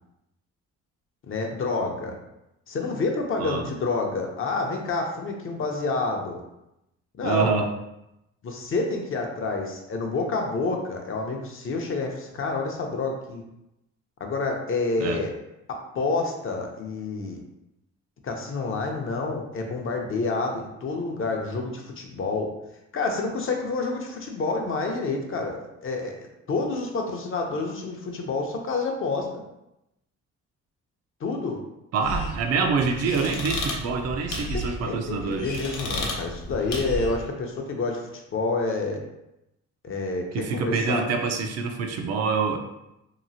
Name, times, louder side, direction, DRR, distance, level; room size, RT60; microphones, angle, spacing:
voice 1, 1.3-2.2 2.7-6.4 7.2-7.6 8.4-13.4 14.2-15.3 15.7-17.4 18.2-22.5 22.9-29.4 31.2-31.6 34.8-39.0 39.8-41.0, left 3 dB, 45° left, 2 dB, 0.6 m, -28 dB
voice 2, 7.2-7.7 15.0-15.2 31.9-35.5 40.3-42.6, right 5 dB, 55° right, 4 dB, 0.5 m, -26 dB
sound 1, 32.0-37.3, left 1 dB, 85° left, 0.7 m, -33 dB
2.9 x 2.4 x 2.6 m, 0.88 s
cardioid pair, 90°, 30 cm